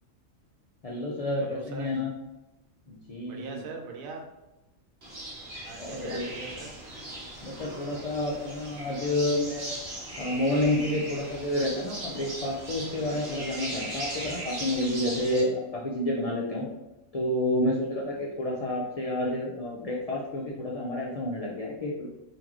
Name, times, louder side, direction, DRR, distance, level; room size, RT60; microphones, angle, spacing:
voice 1, 0.8-2.1 2.9-3.6 5.8-6.3 7.4-9.8 10.2-16.6 17.1-22.1, left 1 dB, 70° left, -4 dB, 0.3 m, -29 dB
voice 2, 1.4-2.0 3.3-4.2 5.6-6.7, right 4 dB, 85° right, 2 dB, 1.1 m, -41 dB
sound 1, 5.0-15.4, right 1 dB, 50° right, 1.2 m, -39 dB
3.7 x 2.7 x 3.0 m, 0.96 s
omnidirectional pair, 1.4 m